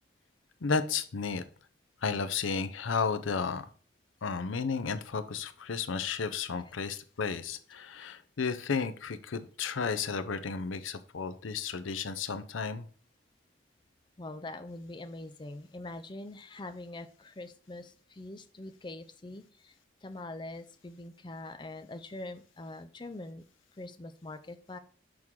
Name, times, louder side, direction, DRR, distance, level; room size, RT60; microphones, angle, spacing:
voice 1, 0.6-1.4 2.0-3.7 4.2-12.9, left 5 dB, 85° left, 11 dB, 0.6 m, -33 dB
voice 2, 14.2-23.4 23.8-24.8, left 2 dB, 25° left, 9 dB, 0.5 m, -43 dB
6.2 x 3.7 x 4.6 m, 0.42 s
head